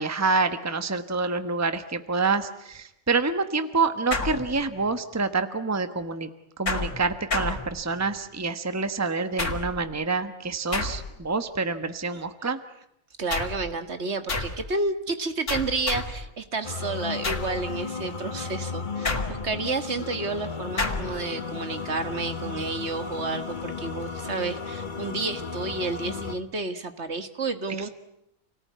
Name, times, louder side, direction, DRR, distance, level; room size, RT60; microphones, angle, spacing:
voice 1, 0.0-6.3 6.6-12.6, right 4 dB, 15° right, 10 dB, 1.2 m, -27 dB
sound 1, 4.1-5.0 6.7-8.2 9.4-9.9 10.7-11.3 13.3-13.7 14.3-14.7 15.5-16.3 17.2-17.6 19.0-19.7 20.8-21.2, left 3 dB, 70° left, 2.9 m, -30 dB
voice 2, 13.2-27.9, right 3 dB, 55° right, 9 dB, 2.0 m, -31 dB
sound 2, 16.6-26.4, left 5 dB, 40° left, 1.5 m, -34 dB
29.0 x 19.0 x 9.5 m, 0.82 s
omnidirectional pair, 1.3 m